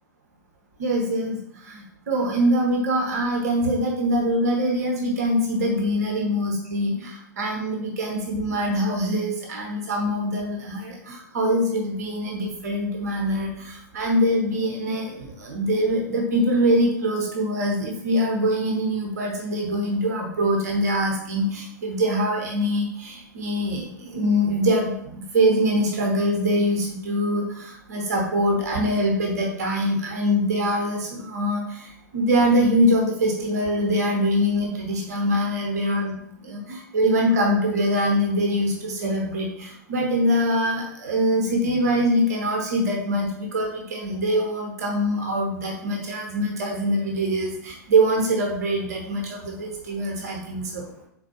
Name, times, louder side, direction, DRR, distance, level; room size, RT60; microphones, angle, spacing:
voice 1, 0.8-1.4 1.6-31.9 32.1-50.8, equal, 55° right, 0 dB, 0.9 m, -23 dB
4.2 x 3.8 x 2.9 m, 0.72 s
figure-of-eight pair, 100°, 10 cm